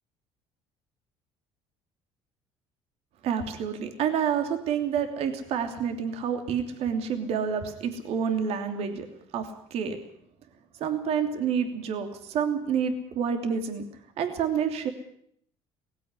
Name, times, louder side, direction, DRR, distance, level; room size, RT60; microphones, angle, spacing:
voice 1, 3.2-9.1 9.3-10.0 10.7-13.8 14.2-14.9, right 7 dB, 65° right, 6 dB, 3.0 m, -28 dB
18.5 x 16.0 x 9.8 m, 0.68 s
supercardioid pair, 90°, 11 cm